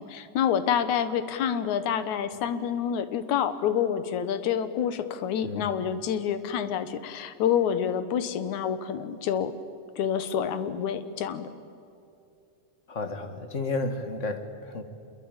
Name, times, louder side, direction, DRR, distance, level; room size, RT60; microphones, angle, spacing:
voice 1, 0.0-9.5 10.0-11.5, left 8 dB, 70° left, 12 dB, 2.6 m, -28 dB
voice 2, 12.9-14.8, left 3 dB, 35° left, 7 dB, 1.4 m, -32 dB
27.0 x 22.0 x 8.9 m, 2.6 s
omnidirectional pair, 3.5 m